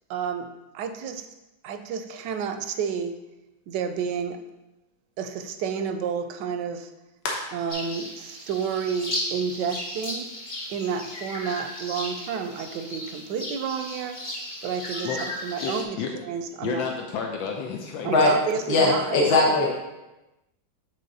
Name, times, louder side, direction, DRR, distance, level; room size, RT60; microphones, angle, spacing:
voice 1, 0.1-1.3 1.6-3.2 3.7-4.4 5.2-6.9 7.5-10.3 10.7-15.1 15.4-16.0 16.3-16.9 18.0-19.2 19.5-19.6, right 6 dB, 75° right, 8 dB, 1.1 m, -30 dB
sound 1, 7.7-15.8, left 1 dB, 30° left, 1.2 m, -35 dB
voice 2, 15.6-16.1 16.6-18.3 19.2-19.3, left 6 dB, 85° left, 2 dB, 1.4 m, -31 dB
voice 3, 18.7-19.7, left 2 dB, 60° left, -3 dB, 1.6 m, -20 dB
9.2 x 3.4 x 4.0 m, 1.0 s
omnidirectional pair, 2.1 m